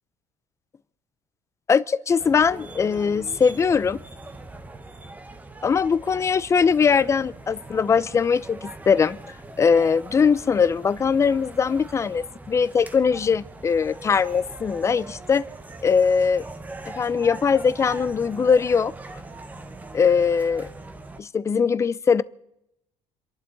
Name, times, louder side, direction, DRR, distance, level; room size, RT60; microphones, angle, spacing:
voice 1, 1.7-4.0 5.6-9.2 9.6-15.4 15.8-16.4 16.9-18.9 19.9-20.7 21.2-22.2, left 6 dB, 25° left, 17 dB, 0.7 m, -21 dB
sound 1, 2.2-21.2, right 2 dB, 15° right, 1.2 m, -41 dB
29.0 x 11.5 x 4.1 m, 0.83 s
cardioid pair, 120°, 12 cm